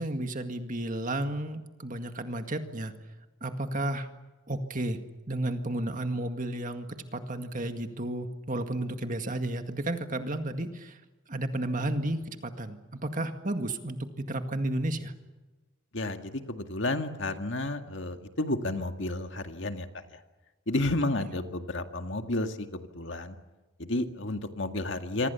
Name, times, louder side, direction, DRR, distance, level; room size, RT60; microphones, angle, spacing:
voice 1, 0.0-2.9 3.4-4.1 4.5-5.0 5.3-6.9 7.1-11.0 11.3-15.1, right 1 dB, 40° right, 7 dB, 2.0 m, -32 dB
voice 2, 15.9-19.9 20.1-20.2 20.7-23.4 23.8-25.3, left 2 dB, 60° left, 6 dB, 2.0 m, -31 dB
27.5 x 25.0 x 7.1 m, 1.2 s
head